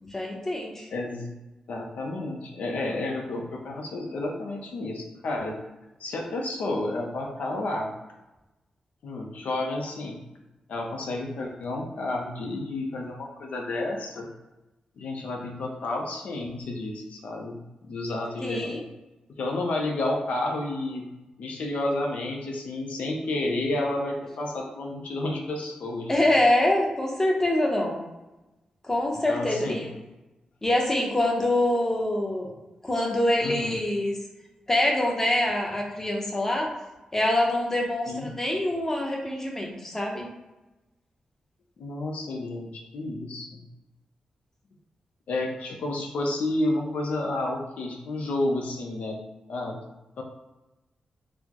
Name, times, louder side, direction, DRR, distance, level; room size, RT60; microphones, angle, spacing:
voice 1, 0.0-0.9 18.4-18.8 26.1-28.0 28.9-29.9 30.6-32.5 32.8-34.1 34.7-36.7 37.1-40.3, left 1 dB, 20° left, -1 dB, 0.7 m, -25 dB
voice 2, 0.9-1.4 1.7-5.6 6.0-7.9 9.0-10.2 10.7-14.3 15.0-18.9 19.3-21.1 21.4-26.3 29.3-29.9 33.4-33.7 38.1-38.3 41.8-43.6 45.3-49.2 49.5-49.8 50.2-50.3, left 2 dB, 80° left, 0 dB, 0.5 m, -31 dB
4.1 x 2.0 x 2.9 m, 1.0 s
wide cardioid pair, 110°, 2 cm